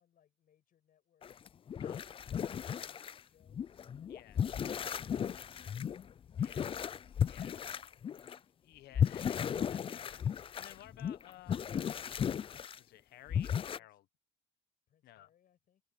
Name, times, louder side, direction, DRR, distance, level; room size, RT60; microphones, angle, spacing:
voice 1, 0.0-1.4 2.3-3.6 4.0-8.5 13.7-14.0 14.9-15.8, left 10 dB, 55° left, 7.7 m, -73 dB
sound 1, 1.2-3.2 3.5-8.4 8.9-12.8 13.3-13.8, left 8 dB, 30° left, 0.4 m, -35 dB
voice 2, 1.8-2.2 4.1-4.4 6.4-6.7 7.3-7.6 8.6-14.1 15.0-15.3, left 14 dB, 75° left, 1.2 m, -56 dB
cardioid pair, 110°, 17 cm